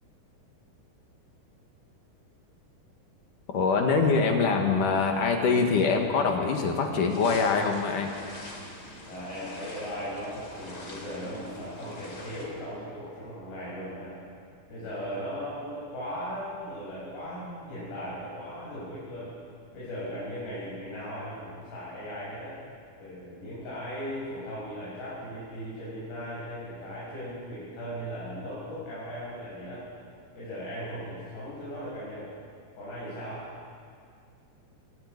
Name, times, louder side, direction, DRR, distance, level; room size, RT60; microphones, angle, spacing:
voice 1, 3.5-8.2, left 4 dB, 60° left, 3 dB, 2.8 m, -24 dB
sound 1, 7.1-12.5, left 2 dB, 25° left, 3.0 m, -44 dB
voice 2, 9.1-14.2 14.7-19.3 19.7-22.6 23.0-29.8 30.3-32.3 32.8-33.5, equal, 75° left, -9 dB, 8.2 m, -38 dB
25.5 x 11.5 x 9.6 m, 2.2 s
omnidirectional pair, 4.9 m